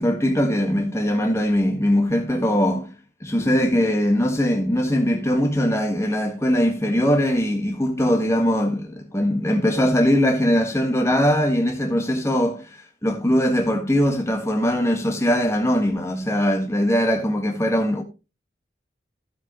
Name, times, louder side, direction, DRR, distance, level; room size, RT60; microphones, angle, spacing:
voice 1, 0.0-2.9 3.2-18.0, equal, 15° left, 1.6 m, -21 dB
13.0 x 7.6 x 3.1 m
head